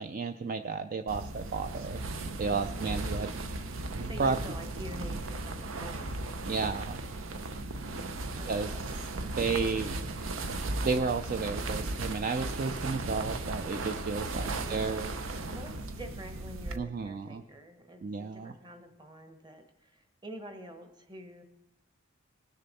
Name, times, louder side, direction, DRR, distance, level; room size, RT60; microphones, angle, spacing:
voice 1, 0.0-2.0 2.4-3.3 4.2-4.4 6.5-7.0 8.5-8.7 9.4-10.1 10.8-15.1 16.7-17.4 18.0-18.5, right 4 dB, 45° right, 8 dB, 0.4 m, -32 dB
sound 1, 1.1-16.8, right 2 dB, 85° right, 0.7 m, -36 dB
voice 2, 2.4-3.1 4.0-6.5 8.3-8.9 14.4-14.8 15.5-21.4, right 1 dB, 20° right, 7 dB, 1.1 m, -47 dB
19.0 x 6.6 x 4.1 m, 0.87 s
head